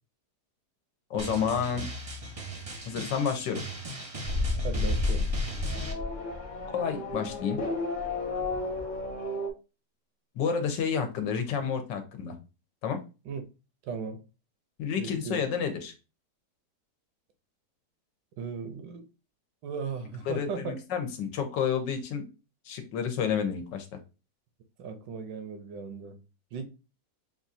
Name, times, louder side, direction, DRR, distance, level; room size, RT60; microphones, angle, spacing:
voice 1, 1.1-1.9 2.9-3.6 6.7-7.6 10.3-12.3 12.8-13.0 14.8-15.9 20.3-22.2 22.7-23.9, left 7 dB, 85° left, 1.4 m, -30 dB
Drum, 1.2-5.9, right 2 dB, 35° right, 0.6 m, -38 dB
Race car auto racing / Accelerating revving vroom, 4.2-9.5, left 3 dB, 50° left, 0.5 m, -31 dB
voice 2, 4.6-5.3 13.2-13.4 13.8-14.2 15.0-15.4 18.4-19.0 19.6-20.8 24.8-26.2 26.5-26.6, right 5 dB, 80° right, 1.4 m, -37 dB
6.0 x 2.4 x 2.6 m
omnidirectional pair, 1.9 m